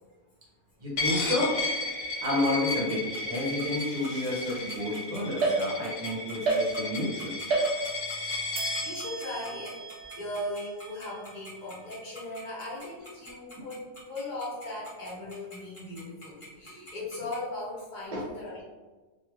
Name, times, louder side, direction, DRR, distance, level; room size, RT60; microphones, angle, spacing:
voice 1, 0.8-1.5 2.2-7.4 16.7-16.8 18.1-18.2, left 1 dB, 35° right, -5 dB, 0.6 m, -30 dB
Coin (dropping), 1.0-8.9, left 3 dB, 80° left, 1.0 m, -34 dB
Tick-tock, 2.2-17.4, equal, 25° left, 0.9 m, -46 dB
sound 1, 5.4-6.1 6.4-7.1 7.5-8.2 8.5-12.0, right 3 dB, 65° right, 0.9 m, -32 dB
voice 2, 8.8-9.8 10.2-18.6, left 1 dB, 50° left, -5 dB, 0.6 m, -38 dB
3.0 x 2.4 x 2.3 m, 1.2 s
omnidirectional pair, 1.4 m